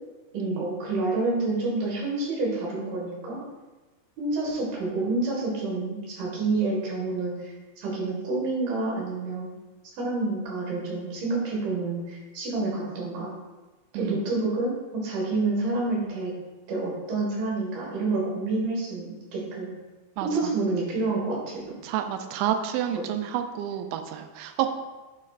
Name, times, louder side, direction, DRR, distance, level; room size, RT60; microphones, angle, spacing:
voice 1, 0.3-3.4 4.2-9.5 10.0-13.3 13.9-16.3 16.7-19.7 20.2-21.6 22.9-23.0, right 3 dB, 60° right, -4 dB, 3.4 m, -28 dB
voice 2, 21.8-24.7, right 10 dB, 85° right, 7 dB, 2.9 m, -29 dB
8.5 x 6.2 x 2.5 m, 1.2 s
omnidirectional pair, 5.1 m